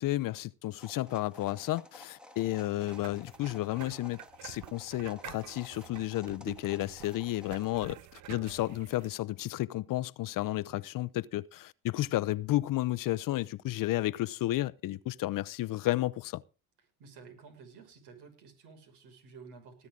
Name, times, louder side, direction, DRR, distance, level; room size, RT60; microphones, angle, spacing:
voice 1, 0.0-8.0 8.3-16.4, left 16 dB, 50° left, 0.7 m, -32 dB
sound 1, 0.8-7.7, left 1 dB, ahead, 1.6 m, -54 dB
sound 2, 2.6-9.1, right 14 dB, 45° right, 0.6 m, -49 dB
voice 2, 17.0-19.9, right 5 dB, 70° right, 6.1 m, -52 dB
19.0 x 9.9 x 3.8 m
supercardioid pair, 95°, 41 cm